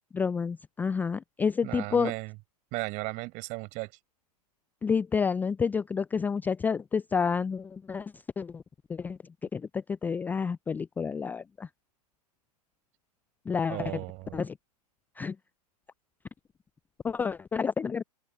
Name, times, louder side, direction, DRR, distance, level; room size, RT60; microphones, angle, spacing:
voice 1, 0.1-2.1 4.8-8.6 8.9-9.2 9.5-11.7 13.5-14.0 14.3-14.6 15.2-15.4 17.0-18.0, left 6 dB, 10° left, 0.5 m, -29 dB
voice 2, 1.6-2.3 2.7-3.9 13.7-14.4, right 26 dB, 35° right, 6.3 m, -35 dB
figure-of-eight pair, 110°, 21 cm